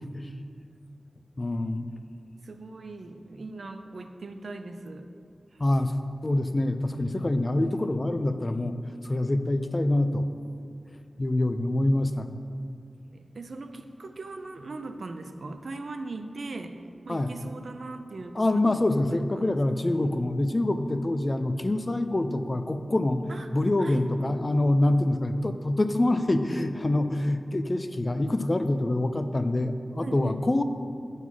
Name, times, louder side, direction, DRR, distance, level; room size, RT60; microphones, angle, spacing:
voice 1, 1.4-1.9 5.6-5.9 6.2-8.8 9.0-10.3 11.2-12.4 17.1-17.3 18.3-23.2 23.5-30.6, left 1 dB, 30° left, 9 dB, 0.4 m, -25 dB
voice 2, 2.4-5.1 13.1-16.8 17.0-18.8 19.1-19.6 23.3-23.5 23.8-24.0 30.0-30.4, right 3 dB, 65° right, 7 dB, 0.4 m, -39 dB
7.3 x 4.1 x 6.0 m, 2.3 s
wide cardioid pair, 95°, 0 cm